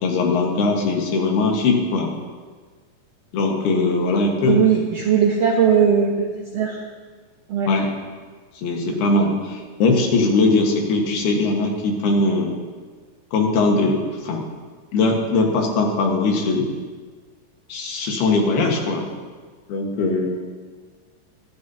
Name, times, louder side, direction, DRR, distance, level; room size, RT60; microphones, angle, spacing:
voice 1, 0.0-2.1 3.3-4.6 7.7-7.9 8.6-12.5 13.3-14.4 14.9-16.7 17.7-19.1 19.7-20.3, left 3 dB, 75° left, 1 dB, 3.5 m, -20 dB
voice 2, 4.5-6.8 7.5-7.7, right 7 dB, 70° right, -2 dB, 1.5 m, -19 dB
22.5 x 12.0 x 2.9 m, 1.5 s
omnidirectional pair, 4.6 m